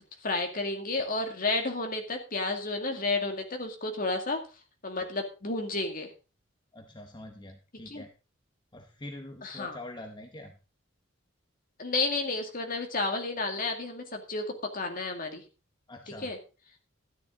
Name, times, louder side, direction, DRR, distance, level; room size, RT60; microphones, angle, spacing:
voice 1, 0.2-4.4 4.8-6.1 7.9-8.0 9.4-9.8 11.8-14.5 14.7-15.4 16.1-16.4, left 3 dB, 45° left, 4 dB, 2.3 m, -31 dB
voice 2, 6.7-8.1 8.7-10.5 15.9-16.3, left 1 dB, 20° left, 5 dB, 1.0 m, -44 dB
13.0 x 10.0 x 3.8 m, 0.33 s
head